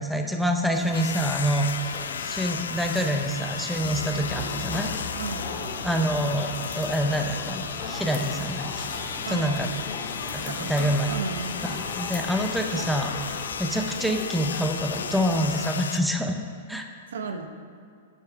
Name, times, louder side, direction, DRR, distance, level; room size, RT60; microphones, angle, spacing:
voice 1, 0.0-4.9 5.8-9.7 10.3-11.1 11.7-13.1 13.6-16.4 16.7-16.9, equal, ahead, 3 dB, 0.7 m, -27 dB
sound 1, 0.7-13.5, left 4 dB, 35° left, 1.5 m, -41 dB
sound 2, 0.9-16.0, left 7 dB, 90° left, 0.4 m, -35 dB
Crowd, 3.7-15.6, left 3 dB, 60° left, 1.9 m, -38 dB
voice 2, 5.1-5.7 9.3-9.8 10.3-11.6 17.1-17.5, right 4 dB, 85° right, 6 dB, 0.8 m, -35 dB
9.8 x 4.6 x 5.7 m, 2.4 s
hypercardioid pair, 130°, 0 cm